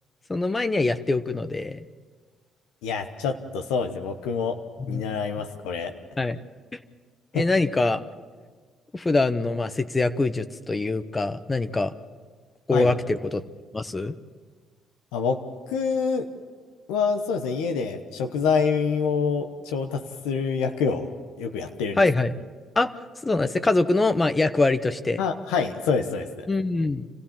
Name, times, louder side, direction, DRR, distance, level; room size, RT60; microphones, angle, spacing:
voice 1, 0.3-1.8 4.8-5.0 6.2-6.4 7.3-8.0 8.9-11.9 12.7-13.4 13.7-14.1 22.0-22.3 22.8-22.9 23.2-25.2 26.5-27.1, left 2 dB, 25° left, 11 dB, 1.0 m, -23 dB
voice 2, 2.8-4.6 4.9-5.9 7.3-7.4 12.7-12.9 15.1-15.4 15.7-16.3 16.9-21.1 21.4-22.0 25.2-26.5, left 5 dB, 85° left, 6 dB, 1.0 m, -26 dB
26.5 x 15.5 x 7.4 m, 1.5 s
supercardioid pair, 60°, 0 cm